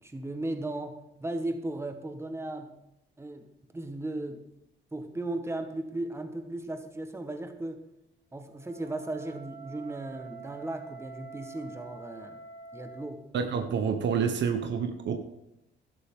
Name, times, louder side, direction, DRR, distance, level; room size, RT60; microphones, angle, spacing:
voice 1, 0.0-2.8 3.2-3.5 3.7-4.4 4.9-7.8 8.3-12.4 12.7-13.2, right 2 dB, 15° right, 6 dB, 1.4 m, -36 dB
Wind instrument woodwind instrument, 8.5-13.1, right 5 dB, 90° right, 4.4 m, -46 dB
voice 2, 13.3-15.2, right 6 dB, 65° right, 7 dB, 1.2 m, -28 dB
11.5 x 11.5 x 3.8 m, 0.86 s
cardioid pair, 90°, 20 cm